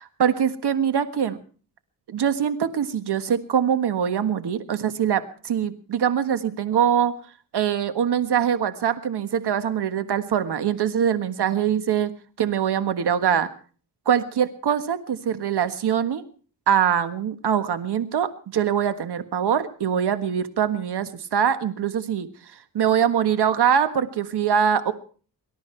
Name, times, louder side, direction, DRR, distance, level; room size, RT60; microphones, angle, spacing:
voice 1, 0.2-1.4 2.1-7.2 7.5-12.1 12.4-13.5 14.0-16.2 16.7-22.3 22.7-24.9, right 8 dB, 80° right, 11 dB, 1.6 m, -23 dB
24.5 x 13.0 x 4.5 m, 0.42 s
cardioid pair, 85°, 40 cm